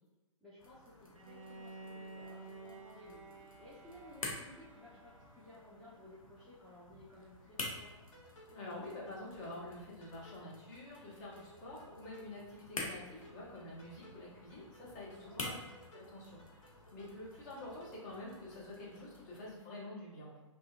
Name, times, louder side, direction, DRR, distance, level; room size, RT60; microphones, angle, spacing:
voice 1, 0.4-7.9 15.1-15.6, left 1 dB, ahead, -12 dB, 0.3 m, -57 dB
sound 1, 0.6-19.5, left 2 dB, 85° left, 0.7 m, -50 dB
Bowed string instrument, 1.1-6.1, right 3 dB, 80° right, 0.4 m, -53 dB
sound 2, 7.6-18.6, equal, 65° left, 1.1 m, -60 dB
voice 2, 8.5-15.6 15.9-16.6 16.9-20.4, left 1 dB, 35° left, -5 dB, 0.9 m, -48 dB
2.6 x 2.2 x 2.4 m, 1.2 s
figure-of-eight pair, 120°, 17 cm